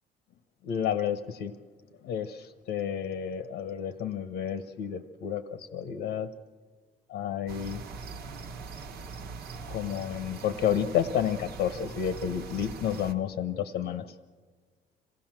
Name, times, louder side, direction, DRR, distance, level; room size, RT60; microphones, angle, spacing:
voice 1, 0.6-1.5 2.0-6.3 7.1-7.8 9.7-14.1, left 9 dB, 85° left, 10 dB, 1.1 m, -31 dB
sound 1, 7.5-13.1, right 4 dB, 70° right, 1.3 m, -42 dB
27.0 x 16.5 x 7.6 m, 1.5 s
cardioid pair, 110°, 17 cm